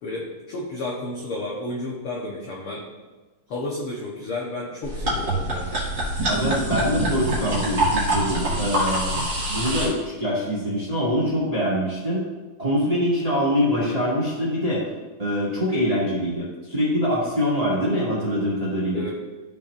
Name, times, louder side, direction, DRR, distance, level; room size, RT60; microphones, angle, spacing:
voice 1, 0.0-2.8 3.5-5.7 18.9-19.1, left 2 dB, 70° left, -3 dB, 1.3 m, -32 dB
sound 1, 4.8-9.9, right 1 dB, 40° right, 2.3 m, -25 dB
voice 2, 6.3-9.2 9.5-12.2 12.6-14.8 15.2-19.1, equal, 15° right, -7 dB, 1.8 m, -24 dB
13.5 x 5.4 x 2.5 m, 1.2 s
omnidirectional pair, 3.8 m